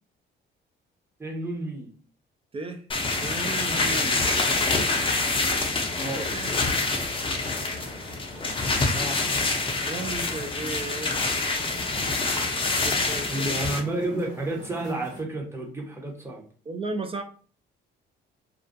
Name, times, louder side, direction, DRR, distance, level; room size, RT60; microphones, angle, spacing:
voice 1, 1.2-1.9 5.9-6.3 8.9-9.3 13.3-16.4, right 2 dB, 15° right, 0 dB, 0.8 m, -31 dB
voice 2, 2.5-4.2 6.0-6.6 9.8-11.1 12.8-13.6 14.1-14.2 16.7-17.2, right 3 dB, 30° right, 6 dB, 0.4 m, -35 dB
sound 1, 2.9-13.8, left 3 dB, 25° left, 0.5 m, -26 dB
sound 2, 2.9-15.2, right 1 dB, 70° right, 1.2 m, -44 dB
2.4 x 2.2 x 2.5 m, 0.42 s
cardioid pair, 90°, 20 cm